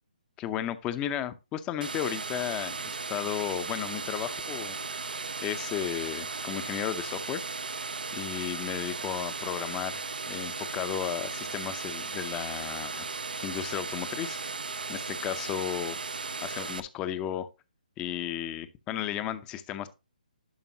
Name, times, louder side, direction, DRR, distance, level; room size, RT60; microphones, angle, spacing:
voice 1, 0.4-4.8 5.4-7.4 8.1-13.1 13.4-14.4 14.9-16.0 16.4-17.5 18.0-19.9, left 11 dB, 20° left, 0.6 m, -34 dB
sound 1, 1.8-16.8, right 4 dB, 85° right, 0.7 m, -36 dB
11.5 x 5.2 x 2.8 m
hypercardioid pair, 150°, 5 cm